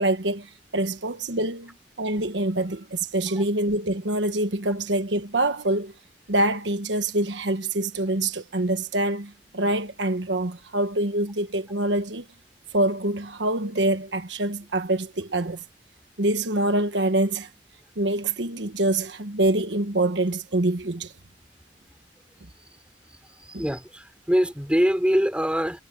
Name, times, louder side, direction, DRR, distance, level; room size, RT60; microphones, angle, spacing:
voice 1, 0.0-5.9 6.3-12.2 12.7-15.6 16.2-17.5 18.0-21.1, right 1 dB, 80° right, 1.3 m, -25 dB
voice 2, 23.3-25.8, equal, 5° right, 5.9 m, -24 dB
head